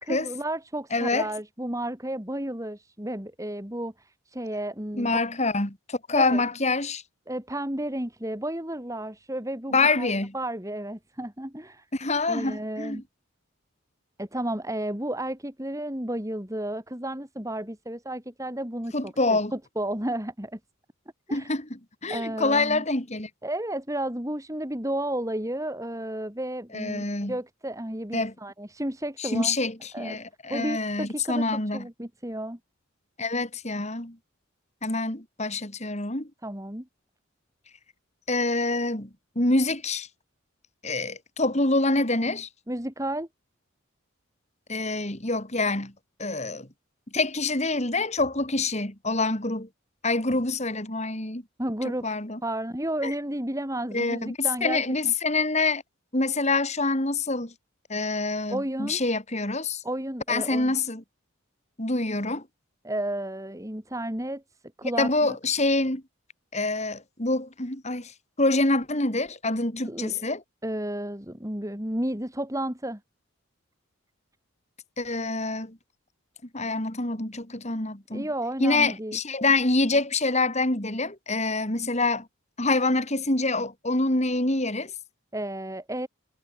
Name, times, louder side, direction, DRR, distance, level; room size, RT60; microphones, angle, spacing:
voice 1, 0.0-5.2 6.1-6.4 7.3-11.9 12.3-13.0 14.2-20.6 21.3-21.5 22.1-22.8 23.4-29.5 29.9-30.2 30.5-32.6 36.4-36.9 42.7-43.3 51.6-52.0 52.4-55.1 58.5-59.0 59.8-60.7 62.8-64.4 64.8-65.4 69.8-70.2 70.6-73.0 78.1-79.2 85.3-86.1, right 1 dB, 15° right, 3.0 m, -32 dB
voice 2, 0.9-1.3 5.0-7.0 9.7-10.3 11.9-13.0 18.9-19.5 21.3-23.3 26.7-27.3 28.1-28.3 29.2-31.9 33.2-34.2 34.8-36.3 38.3-39.1 39.4-40.1 40.8-42.5 44.7-45.9 46.2-46.7 47.1-49.7 50.0-51.4 52.0-52.4 53.0-53.1 53.9-55.8 56.1-57.5 57.9-59.8 60.3-61.0 61.8-62.4 65.0-66.0 66.5-68.1 68.4-70.4 75.0-75.8 76.5-78.3 78.6-82.3 82.6-84.9, left 2 dB, 35° left, 3.4 m, -26 dB
head